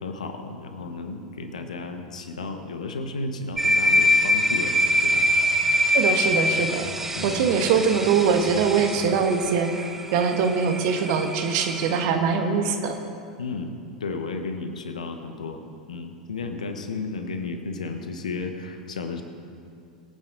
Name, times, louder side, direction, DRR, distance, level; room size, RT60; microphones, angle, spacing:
voice 1, 0.0-5.3 7.1-7.7 13.4-13.7 14.0-15.6 15.9-19.2, left 3 dB, 70° left, 7 dB, 1.2 m, -33 dB
sound 1, 3.6-12.1, equal, 10° right, 1.0 m, -24 dB
voice 2, 5.9-6.9 7.2-13.0, right 6 dB, 50° right, 5 dB, 1.4 m, -23 dB
22.5 x 9.0 x 3.9 m, 2.4 s
figure-of-eight pair, 85°, 4 cm